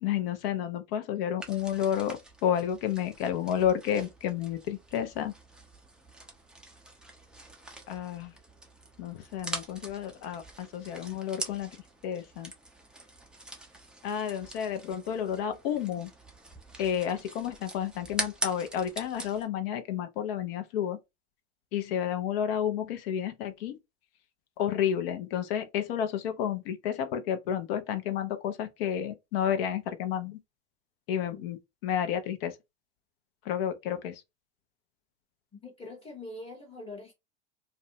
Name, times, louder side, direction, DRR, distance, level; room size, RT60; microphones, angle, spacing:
voice 1, 0.0-5.3 7.9-8.3 9.0-11.7 12.0-12.5 14.0-16.1 16.8-21.0 21.7-23.8 24.6-30.4 31.1-32.5 33.5-34.1, left 9 dB, 55° left, 0.7 m, -31 dB
sound 1, 1.4-19.5, right 1 dB, 5° right, 0.4 m, -43 dB
voice 2, 35.6-37.1, left 2 dB, 15° left, 1.0 m, -43 dB
2.6 x 2.1 x 2.6 m
hypercardioid pair, 90°, 35 cm